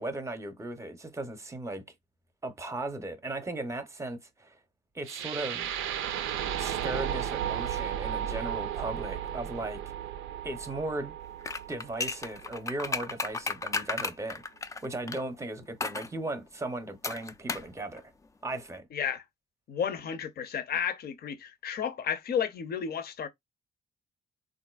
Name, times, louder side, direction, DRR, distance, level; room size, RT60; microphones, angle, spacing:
voice 1, 0.0-1.8 2.4-4.6 4.9-5.7 6.6-9.8 10.4-11.2 11.7-14.4 14.8-18.1 18.4-18.9, right 2 dB, 15° right, 0.7 m, -37 dB
sound 1, 5.0-13.1, right 10 dB, 85° right, 0.4 m, -34 dB
sound 2, 11.4-15.2 15.8-16.1 17.0-17.7 18.0-18.1, left 4 dB, 15° left, 0.3 m, -34 dB
voice 2, 18.9-19.2 19.7-23.3, left 8 dB, 50° left, 0.6 m, -32 dB
3.7 x 2.5 x 2.3 m
cardioid pair, 90°, 20 cm